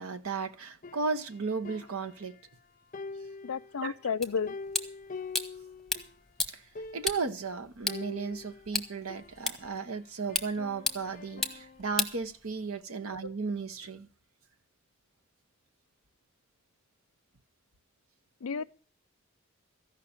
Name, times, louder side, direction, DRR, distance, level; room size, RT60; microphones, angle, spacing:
voice 1, 0.0-2.4 3.8-4.0 6.5-6.6 6.9-14.1, right 4 dB, 85° right, 1.1 m, -35 dB
sound 1, 0.8-2.6 2.9-6.2 6.5-6.6 6.7-7.4 7.9-9.9 10.3-12.0, left 4 dB, 40° left, 0.5 m, -45 dB
voice 2, 3.4-4.5 18.4-18.6, left 6 dB, 85° left, 0.5 m, -32 dB
sound 2, 4.2-12.8, left 3 dB, ahead, 0.9 m, -37 dB
14.0 x 5.7 x 8.8 m
head